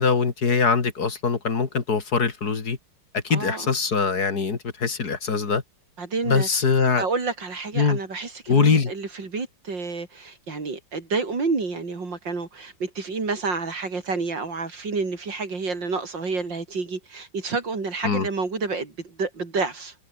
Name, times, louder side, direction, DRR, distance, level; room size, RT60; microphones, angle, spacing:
voice 1, 0.0-2.8 3.1-5.6 6.3-7.0 7.8-8.0 8.5-8.9 18.0-18.3, left 5 dB, 55° left, 2.7 m, -22 dB
voice 2, 3.3-3.7 6.0-6.5 7.0-19.9, right 4 dB, 70° right, 4.4 m, -29 dB
omnidirectional pair, 2.0 m